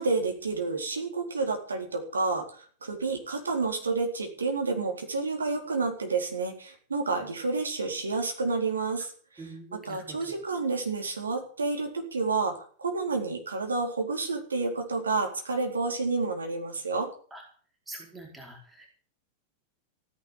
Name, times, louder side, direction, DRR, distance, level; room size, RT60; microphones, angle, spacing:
voice 1, 0.0-17.1, right 3 dB, 75° right, 3 dB, 4.0 m, -30 dB
voice 2, 9.4-10.2 17.3-17.4 17.9-18.9, right 2 dB, 10° right, 1 dB, 4.6 m, -44 dB
16.0 x 11.0 x 7.1 m, 0.44 s
figure-of-eight pair, 90°, 0 cm